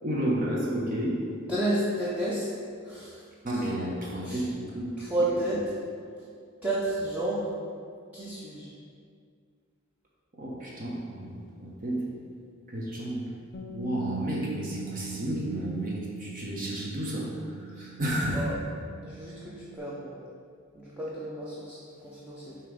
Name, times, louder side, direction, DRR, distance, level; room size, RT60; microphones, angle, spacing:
voice 1, 0.0-1.3 3.4-5.4 10.4-12.1 12.7-13.3 13.7-18.5, right 1 dB, 45° right, -4 dB, 0.9 m, -32 dB
voice 2, 1.5-2.5 2.8-3.2 4.2-4.4 5.0-5.7 6.6-7.6 8.1-8.7 17.8-17.9 18.3-18.5 19.0-20.2 20.7-22.6, right 1 dB, 10° right, -8 dB, 0.7 m, -31 dB
Bass guitar, 13.5-19.8, right 6 dB, 50° left, 0.5 m, -43 dB
6.8 x 3.0 x 5.1 m, 2.2 s
head